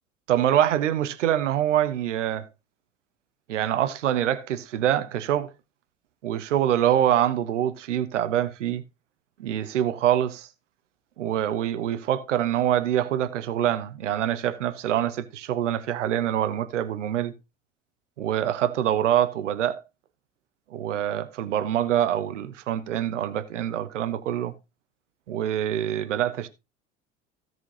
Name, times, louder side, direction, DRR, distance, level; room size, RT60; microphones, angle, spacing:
voice 1, 0.3-2.4 3.5-5.5 6.2-8.8 9.4-10.5 11.2-17.3 18.2-19.8 20.7-24.5 25.3-26.5, right 11 dB, 70° right, 1.1 m, -25 dB
16.5 x 6.2 x 2.9 m
figure-of-eight pair, 65°, 37 cm